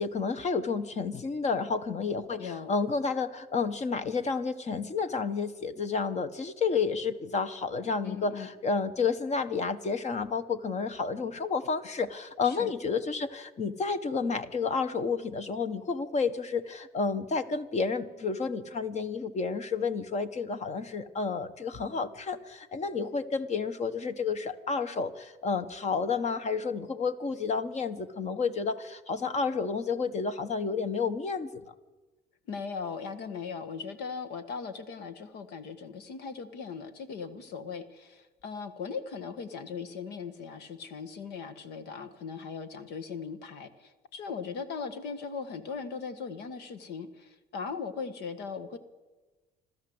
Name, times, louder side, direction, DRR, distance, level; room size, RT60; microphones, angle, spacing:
voice 1, 0.0-31.7, left 5 dB, 40° left, 12 dB, 1.4 m, -31 dB
voice 2, 2.4-2.7 8.0-8.5 12.4-12.7 32.5-48.8, left 5 dB, 85° left, 12 dB, 1.6 m, -39 dB
27.5 x 13.0 x 8.0 m, 1.2 s
cardioid pair, 110°, 17 cm